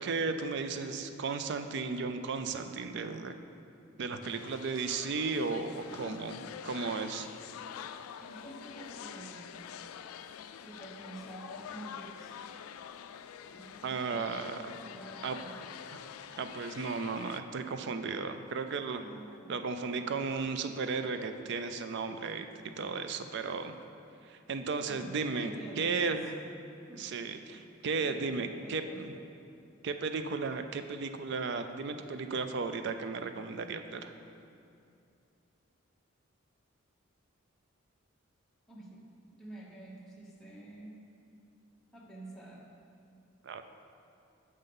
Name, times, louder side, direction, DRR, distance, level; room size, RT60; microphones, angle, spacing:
voice 1, 0.0-3.3 4.0-7.3 13.8-14.6 15.2-15.4 16.4-19.0 19.5-22.5 22.8-23.7 24.2-25.5 25.8-26.4 26.9-29.1 29.8-34.1 43.4-43.6, right 4 dB, 55° right, 8 dB, 0.4 m, -35 dB
sound 1, 4.2-17.4, left 8 dB, 90° left, 0.3 m, -46 dB
voice 2, 8.2-9.8 10.6-12.3 13.5-15.6 18.9-19.7 24.9-26.2 26.9-27.1 27.5-27.6 28.0-29.1 38.7-41.0 41.9-42.7, right 1 dB, ahead, -5 dB, 0.9 m, -49 dB
6.6 x 5.4 x 5.3 m, 2.6 s
head